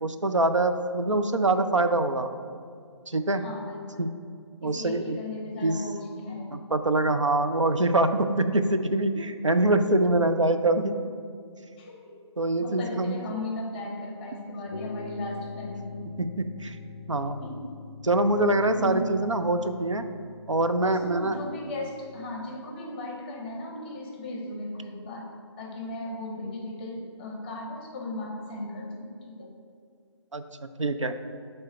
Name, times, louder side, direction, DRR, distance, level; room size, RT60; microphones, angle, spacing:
voice 1, 0.0-2.3 3.1-3.4 4.0-4.1 4.6-5.2 5.6-5.8 6.5-10.9 12.4-13.2 16.2-16.8 17.1-17.4 18.0-20.0 20.5-21.4 30.3-31.1, right 2 dB, 85° right, 8 dB, 0.5 m, -24 dB
voice 2, 3.3-4.1 4.6-6.7 11.7-12.1 12.6-16.1 17.4-17.6 18.7-19.1 20.8-25.3 25.6-29.5, left 2 dB, 20° left, 0 dB, 0.8 m, -36 dB
sound 1, 14.7-22.4, left 5 dB, 50° left, 0.4 m, -44 dB
7.9 x 3.3 x 4.2 m, 2.2 s
figure-of-eight pair, 145°, 15 cm